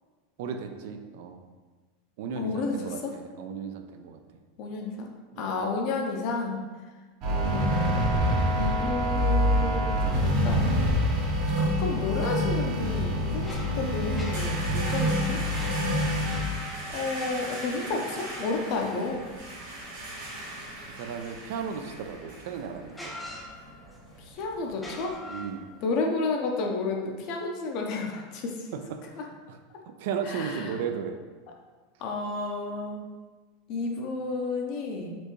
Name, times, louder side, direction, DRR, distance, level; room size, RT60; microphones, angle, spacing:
voice 1, 0.4-1.4 2.2-4.2 5.3-5.5 20.9-23.2 25.2-25.7 28.7-29.6 29.8-31.2, right 6 dB, 70° right, 6 dB, 0.4 m, -35 dB
voice 2, 2.4-2.8 3.0-3.1 4.6-5.1 5.4-6.6 7.2-10.7 11.6-15.4 16.9-19.2 24.3-25.2 25.8-28.7 29.2-29.3 30.3-30.6 32.0-33.0 33.7-35.2, left 3 dB, 50° left, 1 dB, 0.6 m, -31 dB
sound 1, 7.2-16.4, equal, 50° right, 0.9 m, -26 dB
sound 2, 13.1-19.7 22.0-22.1 22.9-24.1 24.7-25.9, left 1 dB, 5° left, 0.5 m, -44 dB
sound 3, 13.5-25.1, right 1 dB, 85° right, 1.2 m, -40 dB
4.3 x 2.6 x 3.1 m, 1.4 s
supercardioid pair, 145°, 0 cm